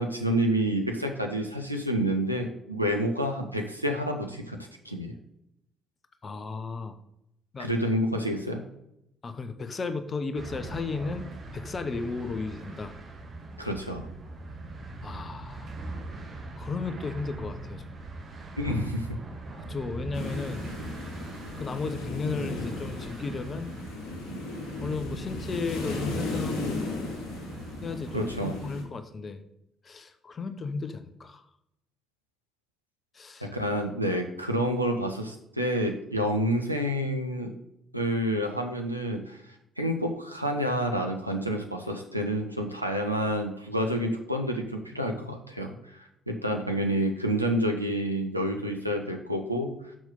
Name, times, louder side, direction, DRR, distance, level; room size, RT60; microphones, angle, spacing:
voice 1, 0.0-4.6 4.8-5.1 7.6-8.6 13.6-14.1 18.6-19.2 28.1-28.6 33.4-37.6 37.9-39.4 39.8-49.9, equal, 90° right, 3 dB, 0.8 m, -29 dB
voice 2, 6.2-7.0 7.5-7.7 9.2-11.3 11.5-12.9 15.0-15.8 16.6-18.0 19.6-20.7 21.6-23.7 24.8-26.8 27.8-29.4 29.8-31.4 33.1-33.5, left 4 dB, 35° left, 9 dB, 0.9 m, -34 dB
sound 1, 10.3-28.8, right 2 dB, 40° right, 1.5 m, -41 dB
sound 2, 20.1-28.8, left 2 dB, 60° left, 1.9 m, -36 dB
6.4 x 6.1 x 5.3 m, 0.80 s
figure-of-eight pair, 45°, 0 cm